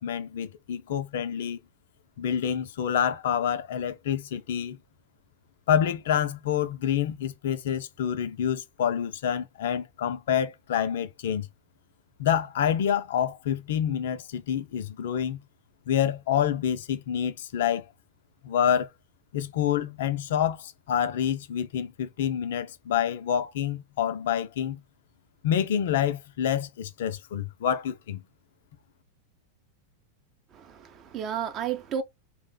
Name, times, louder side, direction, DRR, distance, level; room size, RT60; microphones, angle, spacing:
voice 1, 0.0-1.6 2.2-4.8 5.7-11.5 12.2-15.4 15.9-17.9 18.4-18.9 19.3-24.8 25.4-28.2, left 9 dB, 55° left, 0.4 m, -27 dB
voice 2, 30.5-32.0, right 8 dB, 30° right, 0.5 m, -32 dB
2.5 x 2.0 x 3.6 m
figure-of-eight pair, 90°, 0 cm